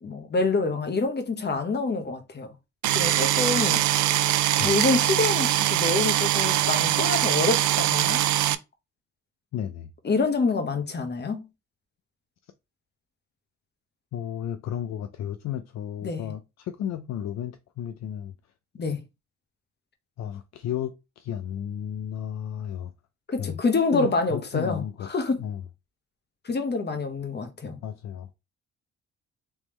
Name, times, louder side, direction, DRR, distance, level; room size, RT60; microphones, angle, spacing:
voice 1, 0.0-2.5 2.9-3.8 4.6-8.2 10.0-11.5 16.0-16.3 18.8-19.0 23.3-25.4 26.4-27.8, left 3 dB, 35° left, 1.1 m, -26 dB
sound 1, 2.8-8.5, right 13 dB, 75° right, 0.4 m, -23 dB
voice 2, 9.5-9.9 14.1-18.3 20.2-22.9 23.4-23.6 23.9-25.1 25.4-25.6 27.8-28.3, left 10 dB, 60° left, 0.5 m, -33 dB
3.6 x 3.0 x 3.1 m
cardioid pair, 90°, 30 cm